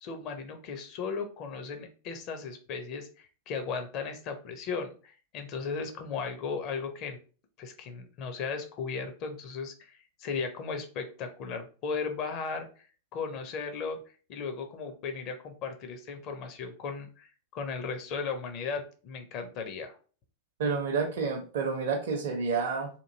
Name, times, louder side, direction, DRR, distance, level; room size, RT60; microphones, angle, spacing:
voice 1, 0.0-7.2 7.6-12.8 13.1-14.0 14.3-20.0, left 5 dB, 40° left, 6 dB, 0.7 m, -36 dB
voice 2, 20.6-22.9, right 5 dB, 55° right, 3 dB, 0.6 m, -29 dB
3.0 x 2.6 x 3.8 m, 0.38 s
figure-of-eight pair, 90°, 0 cm